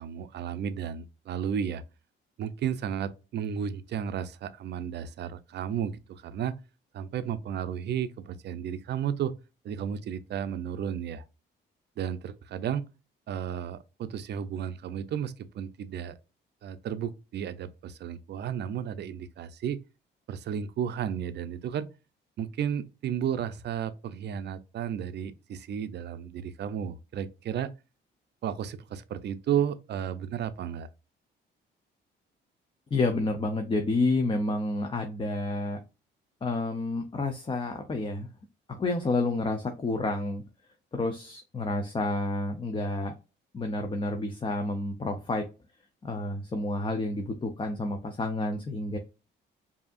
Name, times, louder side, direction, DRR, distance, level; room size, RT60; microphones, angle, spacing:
voice 1, 0.0-1.8 2.4-6.6 6.9-9.3 9.6-11.2 12.0-12.8 13.3-16.1 16.6-19.8 20.3-21.9 22.4-27.7 28.4-30.9, right 8 dB, 60° right, 0.5 m, -33 dB
voice 2, 32.9-35.8 36.4-38.3 38.7-40.4 40.9-43.1 43.5-45.5 46.0-49.0, left 2 dB, 25° left, 0.6 m, -29 dB
4.8 x 2.8 x 2.4 m
cardioid pair, 90°, 20 cm